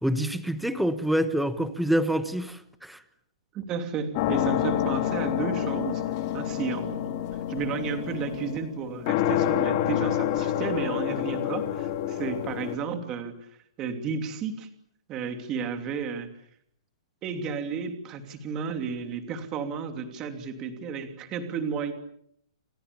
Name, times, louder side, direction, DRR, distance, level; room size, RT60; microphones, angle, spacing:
voice 1, 0.0-3.0, equal, ahead, 11 dB, 1.2 m, -26 dB
voice 2, 3.5-6.0 6.3-7.2 7.5-13.3 13.8-14.7 15.1-16.3 17.2-21.9, right 6 dB, 20° right, 7 dB, 2.9 m, -32 dB
sound 1, 4.1-12.7, left 11 dB, 30° left, 2.1 m, -28 dB
29.5 x 26.0 x 7.0 m, 0.68 s
hypercardioid pair, 175°, 3 cm